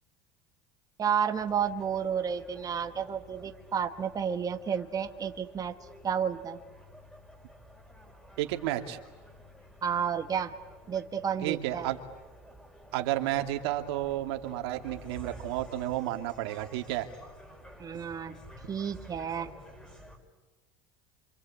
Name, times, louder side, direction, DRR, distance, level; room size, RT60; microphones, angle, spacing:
voice 1, 1.0-5.7 6.0-6.6 9.8-10.5 10.9-11.9 17.8-18.3 18.7-19.5, right 7 dB, 30° right, 6 dB, 1.4 m, -31 dB
sound 1, 1.3-20.2, equal, 5° left, 5.0 m, -52 dB
voice 2, 8.4-9.0 11.4-12.0 12.9-17.1, right 14 dB, 85° right, 6 dB, 2.3 m, -31 dB
26.5 x 26.5 x 8.4 m, 1.2 s
supercardioid pair, 115°, 13 cm